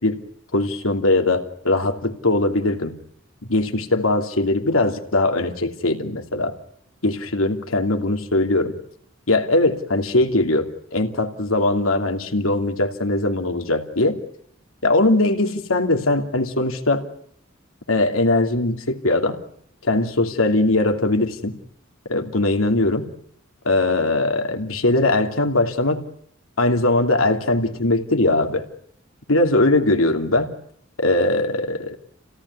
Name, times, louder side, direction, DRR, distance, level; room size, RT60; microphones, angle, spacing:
voice 1, 0.5-3.0 3.5-6.5 7.0-8.7 9.3-14.2 14.8-17.0 17.9-19.4 19.8-21.6 22.1-23.1 23.6-26.0 26.6-28.7 29.3-30.5 31.0-31.9, left 2 dB, 90° left, 5 dB, 2.9 m, -20 dB
28.5 x 17.5 x 9.8 m, 0.70 s
head